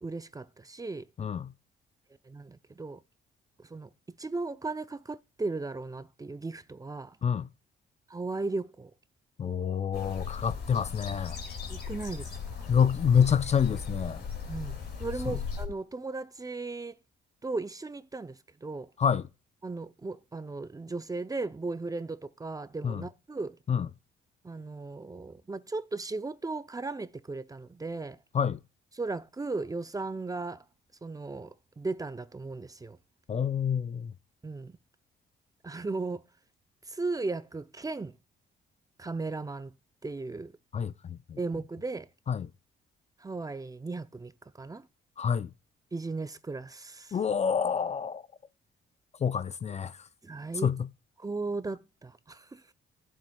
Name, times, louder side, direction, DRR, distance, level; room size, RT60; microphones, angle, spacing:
voice 1, 0.0-1.1 2.2-3.0 3.6-3.9 4.2-7.2 8.1-8.9 11.7-12.7 14.5-17.0 17.4-18.9 19.6-23.6 24.4-28.2 28.9-30.6 31.0-33.0 34.4-34.8 35.6-36.2 36.9-38.2 39.0-39.7 40.0-40.5 41.4-42.1 43.2-44.9 45.9-47.2 50.2-50.7 51.2-52.6, right 3 dB, 20° right, 0.6 m, -36 dB
voice 2, 1.2-1.5 7.2-7.5 9.4-11.4 12.7-14.2 15.3-15.4 19.0-19.3 22.8-23.0 23.7-23.9 28.3-28.6 33.3-34.1 40.7-41.4 42.3-42.5 45.2-45.5 47.1-48.3 49.2-50.1 50.6-50.9, left 7 dB, 35° left, 0.5 m, -27 dB
sound 1, 9.9-15.7, left 6 dB, 55° left, 2.4 m, -37 dB
18.0 x 7.5 x 2.3 m
cardioid pair, 90°, 20 cm